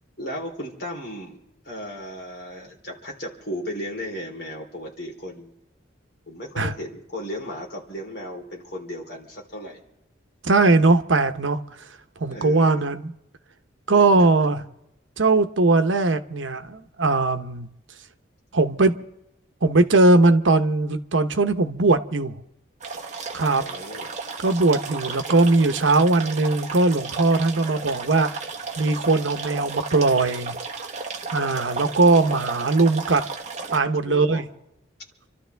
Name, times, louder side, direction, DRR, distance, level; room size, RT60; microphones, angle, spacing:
voice 1, 0.2-1.4 1.6-5.5 6.3-9.8 12.2-12.8 14.2-14.3 23.6-24.1 31.7-32.4 34.0-34.4, left 1 dB, 55° left, 3.8 m, -35 dB
voice 2, 10.4-11.6 12.2-13.1 13.9-14.6 15.2-17.7 18.5-19.0 19.6-22.3 23.3-23.6 24.4-28.4 28.8-30.6 31.3-33.2 33.7-34.4, right 3 dB, 80° right, 1.0 m, -20 dB
sound 1, 22.8-33.8, right 4 dB, 35° right, 1.3 m, -34 dB
28.5 x 13.0 x 3.5 m
head